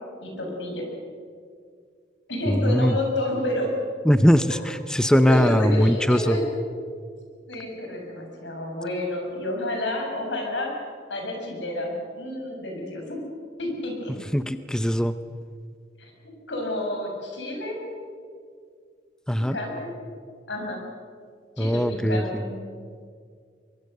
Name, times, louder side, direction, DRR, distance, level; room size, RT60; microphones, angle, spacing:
voice 1, 0.2-0.9 2.3-3.7 5.2-6.4 7.5-10.7 11.1-13.2 13.6-14.1 16.0-16.1 16.5-17.8 19.5-19.9 20.5-20.8 21.6-22.5, left 1 dB, 85° left, 1 dB, 6.6 m, -29 dB
voice 2, 2.5-3.0 4.0-6.4 14.2-15.2 19.3-19.6 21.6-22.4, equal, 5° left, 11 dB, 0.6 m, -21 dB
23.5 x 23.0 x 6.6 m, 2.1 s
head